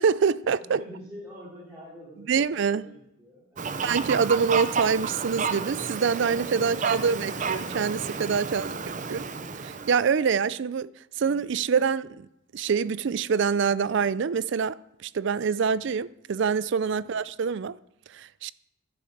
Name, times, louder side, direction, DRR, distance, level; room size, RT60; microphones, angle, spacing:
voice 1, 0.0-0.8 2.3-2.8 3.8-8.7 9.1-9.3 9.6-10.9 11.2-12.3 12.5-17.8 18.1-18.5, right 6 dB, 60° right, 0.4 m, -25 dB
voice 2, 0.6-4.0 17.0-17.2, equal, 15° right, 3.9 m, -47 dB
Fowl, 3.6-10.0, right 5 dB, 40° right, 0.7 m, -31 dB
Wind instrument woodwind instrument, 5.1-9.1, right 1 dB, 25° left, 2.3 m, -47 dB
10.5 x 9.2 x 6.5 m
head